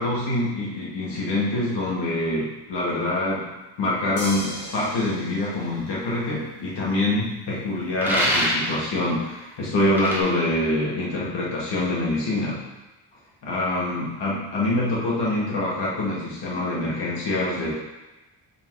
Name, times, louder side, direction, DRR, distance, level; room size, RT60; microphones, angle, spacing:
voice 1, 0.0-3.5 3.8-12.6 13.4-17.7, left 1 dB, 70° left, -5 dB, 2.0 m, -25 dB
sound 1, 4.2-6.6 8.4-8.5, left 1 dB, 55° left, 1.3 m, -37 dB
sound 2, 8.0-8.8 10.0-10.2, equal, 5° right, 0.8 m, -24 dB
5.1 x 3.8 x 4.8 m, 1.1 s
wide cardioid pair, 175°, 42 cm